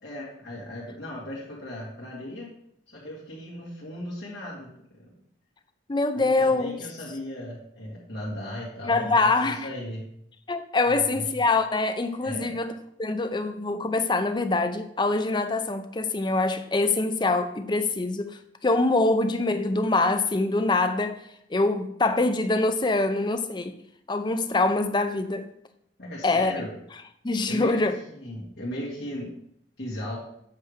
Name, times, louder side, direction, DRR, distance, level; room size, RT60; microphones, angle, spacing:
voice 1, 0.0-2.5 2.9-4.7 5.0-5.1 6.1-10.0 11.1-11.3 12.2-12.5 26.0-26.7 27.5-27.8 28.2-29.4 29.8-30.2, left 1 dB, 70° left, 2.0 m, -36 dB
voice 2, 5.9-6.7 8.8-9.7 10.5-12.7 13.0-21.2 21.5-23.8 24.1-25.5 26.2-26.5 27.2-28.0, left 3 dB, 25° left, 0.5 m, -24 dB
8.1 x 3.3 x 6.5 m
head